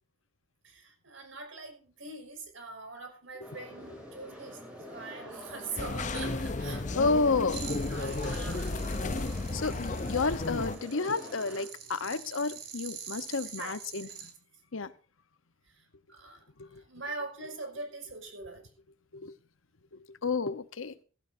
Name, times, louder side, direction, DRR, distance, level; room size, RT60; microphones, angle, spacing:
voice 1, 0.6-4.6 4.9-7.4 7.9-8.7 13.6-14.3 15.8-16.5 16.7-18.7, right 3 dB, 70° right, 5.8 m, -42 dB
sound 1, 3.4-11.6, equal, 5° right, 7.6 m, -46 dB
sound 2, 5.8-10.8, left 2 dB, 35° left, 0.6 m, -33 dB
voice 2, 6.9-7.6 9.5-14.1 14.7-14.9 16.6-16.8 19.1-19.3 20.1-20.9, left 4 dB, 80° left, 1.0 m, -31 dB
sound 3, 7.5-14.3, right 7 dB, 50° right, 3.5 m, -46 dB
16.5 x 15.0 x 2.7 m
head